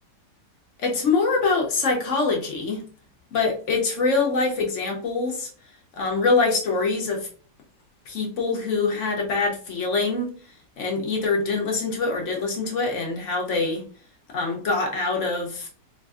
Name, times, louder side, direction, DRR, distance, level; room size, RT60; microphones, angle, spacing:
voice 1, 0.8-2.8 3.3-5.5 6.0-7.3 8.1-10.3 10.8-13.8 14.3-15.7, left 3 dB, 60° left, 0 dB, 0.8 m, -24 dB
3.9 x 2.5 x 2.3 m, 0.42 s
omnidirectional pair, 1.9 m